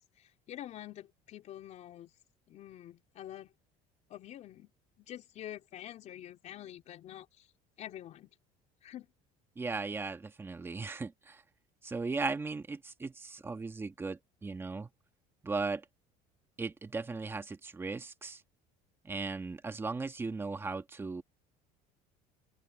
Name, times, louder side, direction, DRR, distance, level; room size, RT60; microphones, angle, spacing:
voice 1, 0.0-2.1 2.5-3.5 4.1-4.7 5.0-7.5 7.8-8.3 8.8-9.1, left 12 dB, 45° left, 3.6 m, -47 dB
voice 2, 9.6-11.4 11.8-14.9 15.4-15.9 16.6-18.4 19.0-21.2, right 4 dB, 15° right, 1.8 m, -37 dB
open air
cardioid pair, 145°, 16 cm